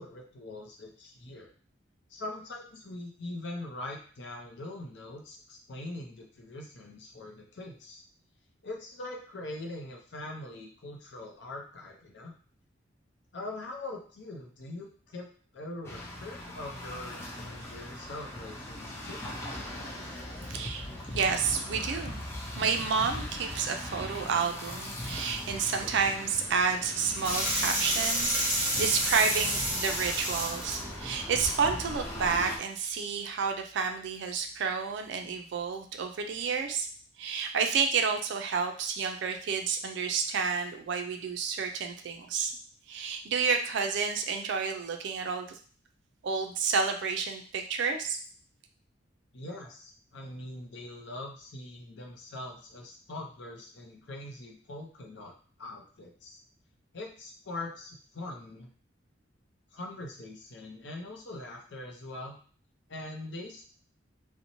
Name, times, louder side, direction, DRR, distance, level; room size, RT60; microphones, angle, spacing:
voice 1, 0.0-1.5 2.1-8.0 8.6-12.3 13.3-15.3 15.5-19.2 49.3-56.4 56.9-58.7 59.7-62.4 62.9-63.7, left 2 dB, 65° left, 1 dB, 0.5 m, -42 dB
sound 1, 15.8-32.6, left 1 dB, 15° left, 0.4 m, -40 dB
voice 2, 20.4-22.3 22.5-36.9 37.2-42.5 42.9-45.6 46.2-48.2, right 5 dB, 65° right, 4 dB, 0.3 m, -30 dB
sound 2, 27.2-32.4, right 1 dB, 10° right, 0.7 m, -31 dB
2.6 x 2.0 x 2.9 m, 0.43 s
head